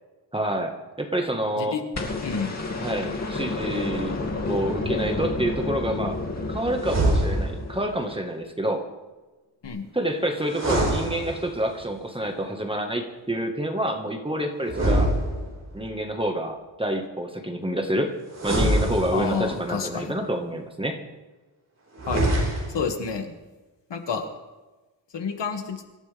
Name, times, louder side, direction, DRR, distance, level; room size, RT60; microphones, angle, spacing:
voice 1, 0.3-1.8 2.8-4.2 4.5-6.2 6.5-8.8 9.9-15.1 15.7-18.1 18.4-21.0, right 1 dB, 10° right, 3 dB, 1.6 m, -28 dB
sound 1, 1.9-8.1 9.6-9.7, left 3 dB, 35° left, 2.5 m, -30 dB
voice 2, 2.2-2.5 9.6-9.8 19.1-20.2 22.0-22.3 22.7-23.3 23.9-24.3 25.1-25.8, left 6 dB, 65° left, 4 dB, 2.2 m, -29 dB
sound 2, 6.8-7.7 10.4-11.8 14.6-15.8 18.3-19.6 21.9-22.9, right 1 dB, 35° right, 5.1 m, -24 dB
26.0 x 14.5 x 3.5 m, 1.2 s
wide cardioid pair, 160°, 45 cm